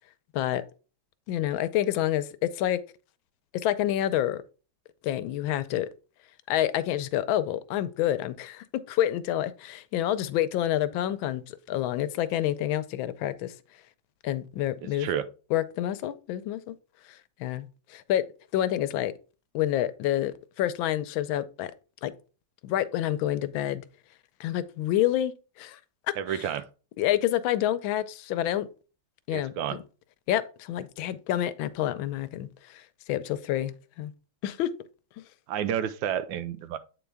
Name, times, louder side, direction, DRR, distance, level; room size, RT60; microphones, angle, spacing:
voice 1, 1.3-2.8 3.6-4.4 5.0-5.9 6.5-13.5 14.2-15.1 15.5-16.7 17.1-18.2 18.5-19.1 19.5-21.7 22.0-22.1 22.6-23.8 24.4-25.3 25.6-25.8 26.3-26.5 27.0-28.7 29.3-29.8 30.3-34.1 34.4-34.7, left 12 dB, 80° left, 1.3 m, -28 dB
voice 2, 14.8-15.3 26.2-26.6 29.3-29.8 35.5-36.8, right 9 dB, 80° right, 1.3 m, -30 dB
8.3 x 3.9 x 3.4 m
omnidirectional pair, 2.2 m